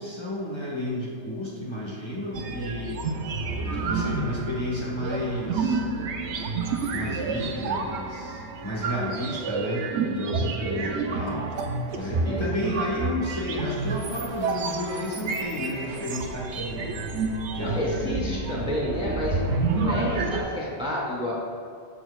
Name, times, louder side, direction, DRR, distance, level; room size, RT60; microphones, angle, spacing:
voice 1, 0.0-3.0 3.6-5.8 6.9-11.5 11.9-16.9 17.5-18.4, left 1 dB, 25° left, -6 dB, 1.1 m, -32 dB
sound 1, 2.3-20.4, right 3 dB, 85° right, 0.9 m, -29 dB
voice 2, 10.2-11.0 11.9-12.5 17.6-21.3, left 1 dB, 5° right, -5 dB, 1.1 m, -30 dB
13.0 x 4.4 x 2.3 m, 2.3 s
omnidirectional pair, 1.1 m